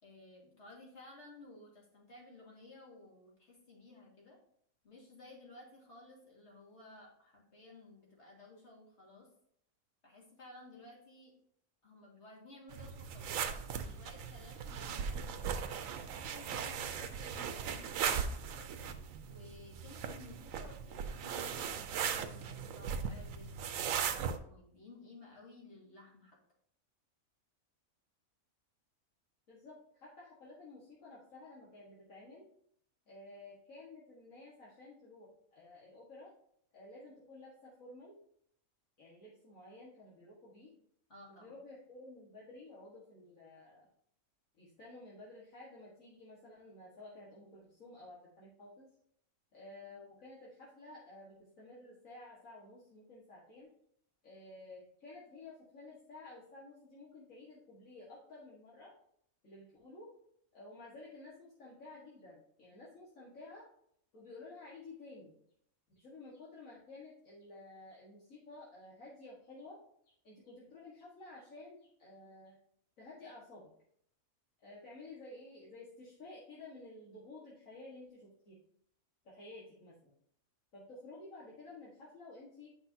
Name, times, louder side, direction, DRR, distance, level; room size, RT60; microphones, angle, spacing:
voice 1, 0.0-4.4 4.8-9.3 10.0-11.3 11.8-13.4 13.7-15.5 16.1-18.7 19.2-26.4 41.1-41.6, left 2 dB, 50° left, -2 dB, 2.3 m, -56 dB
sound 1, 12.7-24.4, right 7 dB, 75° right, 1.0 m, -38 dB
voice 2, 29.5-32.5 33.1-36.3 36.7-38.2 39.0-40.7 41.3-43.9 44.6-48.9 49.5-53.7 54.2-58.9 59.4-60.1 60.5-63.7 64.1-65.4 65.9-69.8 70.2-72.5 73.0-73.7 74.6-78.6 79.2-80.1 80.7-82.7, left 2 dB, 70° left, -6 dB, 2.0 m, -53 dB
9.0 x 5.9 x 2.7 m, 0.68 s
omnidirectional pair, 1.5 m